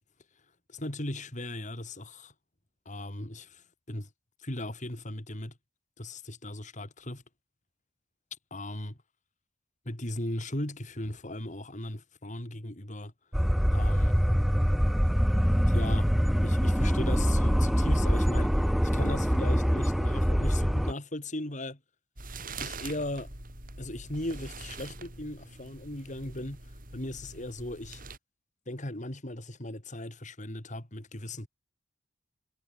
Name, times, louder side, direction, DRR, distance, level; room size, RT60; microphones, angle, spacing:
voice 1, 0.7-2.3 2.9-4.1 4.4-5.5 6.0-7.2 8.5-9.0 9.9-13.1 13.7-14.2 15.3-16.1 16.4-21.8 22.6-23.3 23.8-28.0 28.7-31.5, left 1 dB, 40° left, 3.7 m, -38 dB
sound 1, 13.3-20.9, equal, ahead, 0.7 m, -24 dB
sound 2, 22.2-28.2, right 3 dB, 45° right, 7.7 m, -44 dB
head